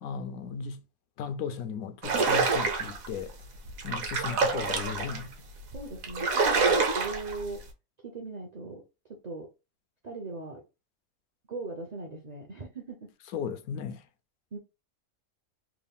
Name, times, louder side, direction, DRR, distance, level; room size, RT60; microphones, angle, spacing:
voice 1, 0.0-0.8 1.2-3.4 3.8-5.5 13.3-14.0, left 6 dB, 80° left, 1.0 m, -36 dB
sound 1, 2.0-3.1 3.7-5.2 5.7-5.8 6.0-7.4, right 4 dB, 70° right, 1.3 m, -26 dB
voice 2, 5.7-7.6 8.0-8.8 9.1-9.5 10.0-10.6 11.5-13.1 14.5-14.6, right 3 dB, 50° right, 0.5 m, -39 dB
3.4 x 2.3 x 3.5 m
omnidirectional pair, 1.5 m